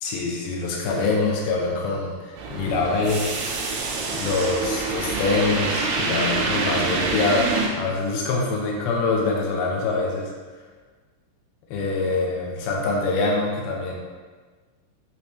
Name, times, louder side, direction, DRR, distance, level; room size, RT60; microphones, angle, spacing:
voice 1, 0.0-3.3 4.1-10.3 11.7-14.0, left 3 dB, 85° left, -2 dB, 2.2 m, -24 dB
sound 1, 2.4-7.7, right 3 dB, 80° right, 3.1 m, -26 dB
9.1 x 3.4 x 3.2 m, 1.4 s
omnidirectional pair, 5.5 m